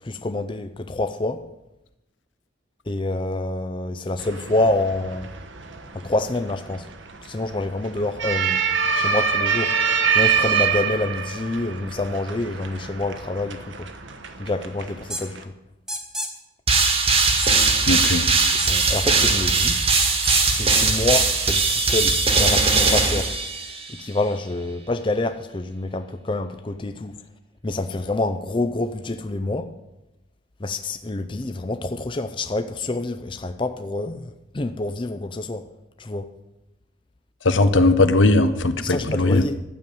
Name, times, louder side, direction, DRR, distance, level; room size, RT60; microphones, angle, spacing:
voice 1, 0.0-1.4 2.9-5.3 5.9-6.9 7.2-8.6 8.9-9.7 10.1-13.9 14.4-15.5 18.6-19.8 20.5-23.3 23.9-27.2 27.6-29.7 30.6-35.7 36.0-36.3 38.8-39.6, left 2 dB, 25° left, 0.5 m, -27 dB
sound 1, 4.2-15.4, right 6 dB, 75° right, 1.2 m, -26 dB
sound 2, 15.1-15.2 15.9-16.3 16.7-16.9 17.4-17.9 18.6-19.0 19.9-20.6, equal, ahead, 1.4 m, -29 dB
sound 3, 16.7-23.9, right 4 dB, 30° right, 1.4 m, -20 dB
voice 2, 17.9-18.3 37.4-39.4, left 2 dB, 75° left, 1.0 m, -18 dB
12.5 x 7.0 x 9.1 m
head